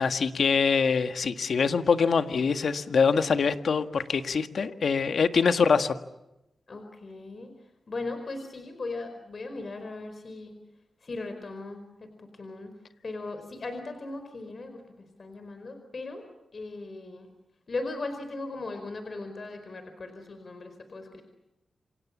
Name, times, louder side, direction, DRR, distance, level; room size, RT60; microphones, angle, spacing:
voice 1, 0.0-6.0, left 5 dB, 70° left, 8 dB, 1.7 m, -24 dB
voice 2, 6.7-7.5 7.9-10.6 11.0-12.1 12.4-12.7 13.0-14.8 15.2-16.2 16.5-17.3 17.7-21.2, left 3 dB, 50° left, 7 dB, 4.7 m, -38 dB
28.0 x 28.0 x 7.4 m, 0.93 s
cardioid pair, 65°, 0 cm